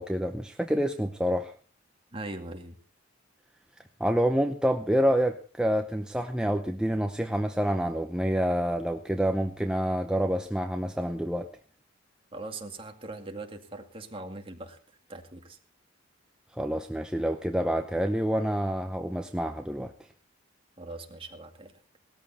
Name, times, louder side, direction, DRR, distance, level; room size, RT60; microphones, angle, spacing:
voice 1, 0.0-1.5 4.0-11.5 16.6-19.9, equal, 5° right, 5 dB, 0.7 m, -27 dB
voice 2, 2.1-2.8 12.3-14.8 15.1-15.6 20.8-21.8, right 2 dB, 30° right, 4 dB, 2.2 m, -41 dB
19.0 x 14.0 x 4.1 m, 0.38 s
head